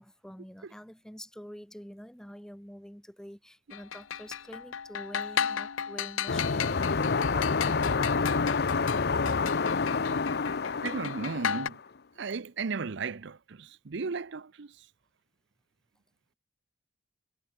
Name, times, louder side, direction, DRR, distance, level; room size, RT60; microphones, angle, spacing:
voice 1, 0.0-8.4, equal, 5° left, 1.8 m, -47 dB
sound 1, 3.7-11.7, left 8 dB, 85° left, 0.8 m, -35 dB
sound 2, 6.3-11.8, left 4 dB, 55° left, 0.8 m, -28 dB
voice 2, 10.8-11.8 12.2-14.8, right 4 dB, 60° right, 0.6 m, -35 dB
head